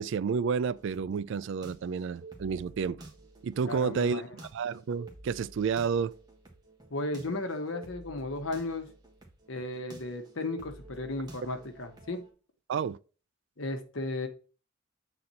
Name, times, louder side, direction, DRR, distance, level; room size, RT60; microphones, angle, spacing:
voice 1, 0.0-3.0 3.4-4.2 4.5-6.1 12.7-13.0, right 6 dB, 65° right, 0.3 m, -30 dB
sound 1, 0.6-12.3, right 2 dB, 20° right, 1.4 m, -51 dB
voice 2, 3.7-4.3 6.9-8.9 9.5-12.2 13.6-14.3, left 2 dB, 75° left, 1.1 m, -35 dB
7.8 x 4.1 x 4.1 m
head